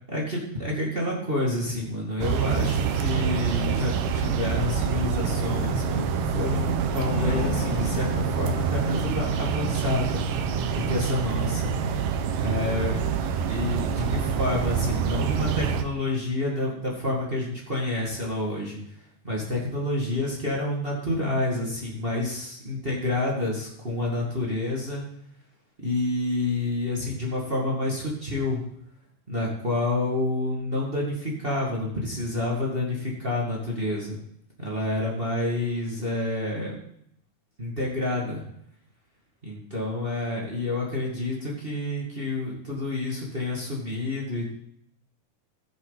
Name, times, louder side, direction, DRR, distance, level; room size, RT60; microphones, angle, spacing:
voice 1, 0.1-10.2 10.7-11.7 12.4-19.0 19.2-25.0 25.8-28.6 29.3-34.2 34.6-36.7 37.6-38.4 39.4-44.5, left 2 dB, 25° right, -3 dB, 1.3 m, -29 dB
sound 1, 2.2-15.8, right 6 dB, 70° right, 2.2 m, -26 dB
sound 2, 6.8-10.3, equal, 35° left, 1.1 m, -35 dB
15.0 x 9.1 x 4.1 m, 0.72 s
omnidirectional pair, 4.5 m